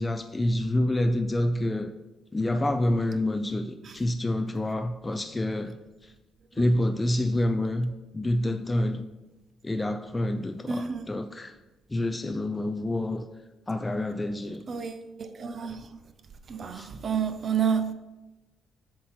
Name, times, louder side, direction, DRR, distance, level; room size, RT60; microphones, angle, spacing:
voice 1, 0.0-1.9 2.3-5.8 6.0-6.1 6.6-9.0 9.6-11.5 11.9-13.3 13.7-14.6 16.7-16.9, left 1 dB, 20° left, 0.3 m, -27 dB
voice 2, 10.7-11.1 14.7-15.9 16.5-17.9, right 6 dB, 50° right, 0.5 m, -30 dB
7.4 x 2.9 x 5.7 m
cardioid pair, 90°, 0 cm